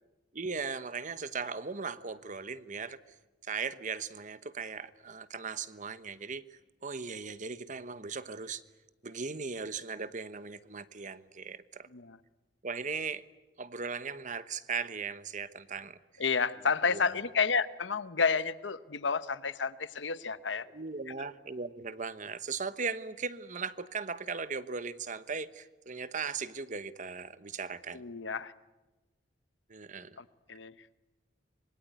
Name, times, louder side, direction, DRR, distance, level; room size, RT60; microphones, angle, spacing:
voice 1, 0.3-3.0 3.5-8.6 9.0-11.9 12.6-13.2 13.6-16.2 16.9-17.0 20.7-28.0 29.7-30.2, right 5 dB, 45° right, 14 dB, 1.1 m, -38 dB
voice 2, 16.2-20.7 21.2-21.3 27.9-28.5 30.2-30.7, left 5 dB, 80° left, 14 dB, 1.0 m, -31 dB
25.5 x 22.0 x 9.4 m, 1.1 s
head